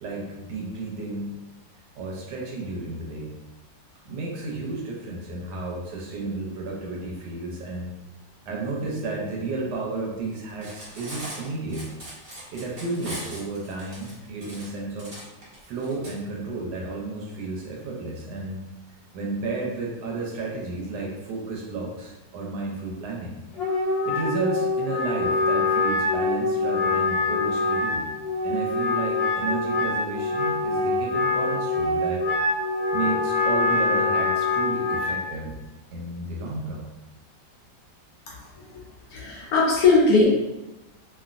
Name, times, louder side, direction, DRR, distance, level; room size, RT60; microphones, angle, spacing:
voice 1, 0.0-1.3 1.9-3.3 4.0-7.9 8.5-11.9 12.5-15.1 15.6-18.7 19.1-23.4 24.0-28.1 28.4-32.2 32.9-35.6 35.9-36.8, right 3 dB, 75° right, -2 dB, 1.2 m, -32 dB
Cutlery silverware, 10.6-16.1, right 1 dB, 40° right, 1.0 m, -40 dB
Wind instrument woodwind instrument, 23.5-35.2, left 3 dB, 90° left, 1.4 m, -24 dB
voice 2, 38.3-38.8 39.1-40.3, left 3 dB, 70° left, -4 dB, 1.0 m, -20 dB
3.0 x 2.5 x 2.4 m, 1.0 s
omnidirectional pair, 1.9 m